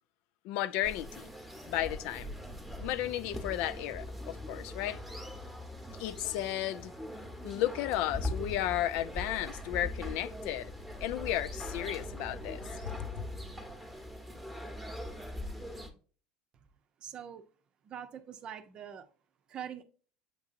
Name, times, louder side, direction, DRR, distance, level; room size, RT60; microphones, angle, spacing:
voice 1, 0.4-1.3 1.7-2.3 2.8-5.0 6.0-6.9 7.4-10.7 11.0-12.6 13.0-13.2, left 13 dB, 70° left, 0.3 m, -34 dB
sound 1, 0.8-15.9, left 1 dB, ahead, 1.0 m, -41 dB
voice 2, 17.0-17.4 17.8-19.1 19.5-19.8, right 9 dB, 40° right, 0.6 m, -43 dB
7.9 x 2.7 x 2.5 m
supercardioid pair, 100°, 2 cm